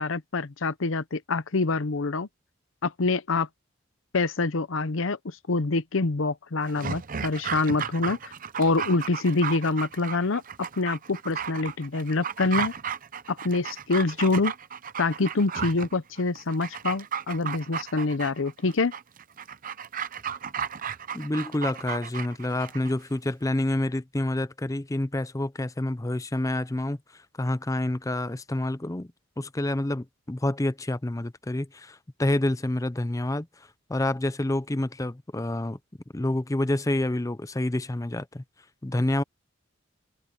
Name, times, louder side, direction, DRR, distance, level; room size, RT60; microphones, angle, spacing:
voice 1, 0.0-2.3 2.8-3.5 4.1-8.3 8.6-10.4 10.8-12.7 13.3-14.5 15.0-18.9, left 3 dB, 80° left, 0.8 m, -26 dB
Dog, 6.7-22.9 23.2-23.3, right 7 dB, 45° right, 0.7 m, -34 dB
voice 2, 21.1-27.0 27.4-29.1 29.4-33.5 33.9-35.8 36.1-38.4 38.8-39.2, left 1 dB, 15° left, 0.6 m, -28 dB
head